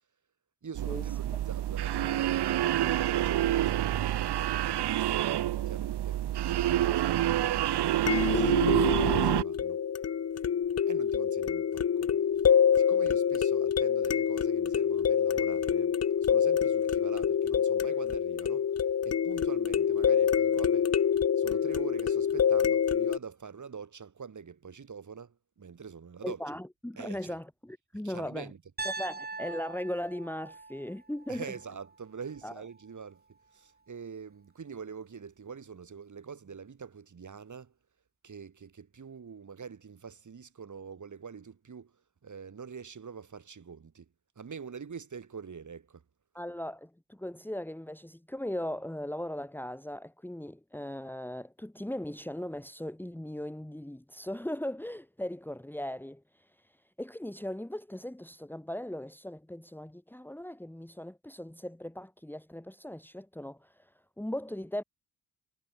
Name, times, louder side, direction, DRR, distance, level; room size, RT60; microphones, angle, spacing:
voice 1, 0.6-4.1 4.3-6.2 6.5-9.8 10.9-12.1 12.8-18.7 19.0-20.9 21.4-26.4 27.0-27.3 28.0-28.6 31.3-37.7 38.2-41.9 42.2-44.1 44.4-46.0, right 6 dB, 45° right, 7.5 m, -44 dB
sound 1, 0.8-9.4, right 12 dB, 75° right, 1.6 m, -27 dB
sound 2, 3.4-3.5 8.1-23.2, left 8 dB, 40° left, 0.9 m, -26 dB
voice 2, 26.2-28.5 28.8-31.5 32.4-32.5 46.3-56.2 57.0-63.9 64.2-64.8, left 1 dB, 5° left, 2.3 m, -38 dB
Piano, 28.8-32.8, right 3 dB, 25° right, 2.9 m, -42 dB
cardioid pair, 80°, 40 cm